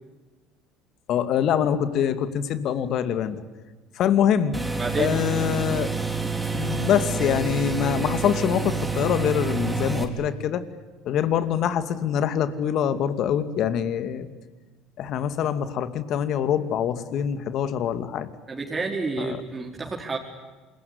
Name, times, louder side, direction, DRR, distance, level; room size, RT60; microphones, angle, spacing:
voice 1, 1.1-3.4 4.0-4.6 5.0-6.0 6.5-10.6 11.0-14.3 15.0-18.3 19.2-19.4, left 9 dB, 60° left, 12 dB, 2.4 m, -24 dB
sound 1, 4.5-10.0, right 4 dB, 5° right, 4.8 m, -28 dB
voice 2, 4.8-5.2 18.5-20.2, right 3 dB, 25° right, -1 dB, 4.5 m, -29 dB
27.5 x 22.0 x 9.7 m, 1.3 s
hypercardioid pair, 75°, 0 cm